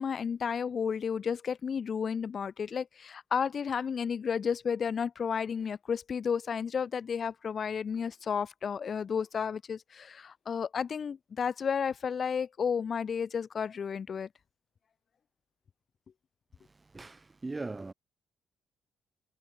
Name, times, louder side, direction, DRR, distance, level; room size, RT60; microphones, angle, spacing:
voice 1, 0.0-14.3, left 6 dB, 50° left, 2.0 m, -32 dB
voice 2, 16.6-17.9, right 3 dB, 20° right, 3.9 m, -40 dB
cardioid pair, 90°, 0 cm